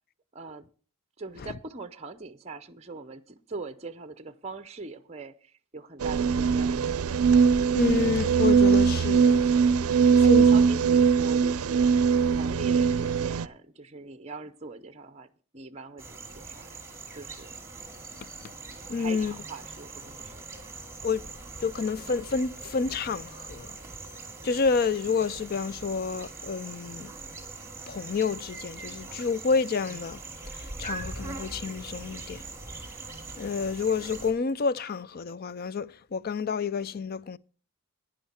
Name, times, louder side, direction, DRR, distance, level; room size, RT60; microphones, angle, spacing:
voice 1, 0.3-0.7 1.2-6.9 9.9-15.3 15.5-16.8 17.2-17.5 18.9-20.4, right 3 dB, 30° right, 0.6 m, -42 dB
sound 1, 6.0-13.5, right 6 dB, 85° right, 0.5 m, -21 dB
voice 2, 7.7-9.4 10.2-10.4 18.9-19.3 21.0-21.2 21.6-23.8 24.4-27.1 27.9-30.2 30.5-32.4 33.4-37.4, left 5 dB, 45° left, 0.4 m, -29 dB
sound 2, 16.0-34.3, right 3 dB, 15° right, 2.5 m, -42 dB
11.5 x 10.0 x 4.3 m
head